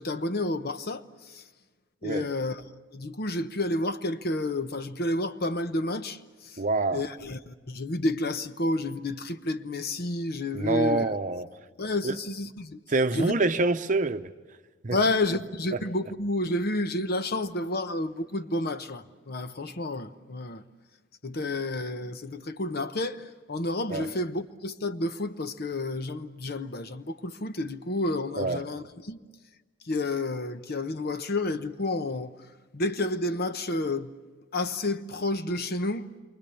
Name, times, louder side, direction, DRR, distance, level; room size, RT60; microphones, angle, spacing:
voice 1, 0.0-1.4 2.0-2.6 2.9-6.6 6.9-11.0 11.8-12.8 13.1-13.3 14.9-20.6 21.2-29.2 29.8-32.3 32.7-34.1 34.5-36.1, left 2 dB, 55° left, 1.0 m, -30 dB
voice 2, 6.6-7.0 10.5-11.5 12.0-12.1 12.9-14.3 14.8-15.0 23.9-24.1 28.4-28.6, right 3 dB, 40° right, 0.8 m, -26 dB
29.0 x 24.5 x 7.0 m
head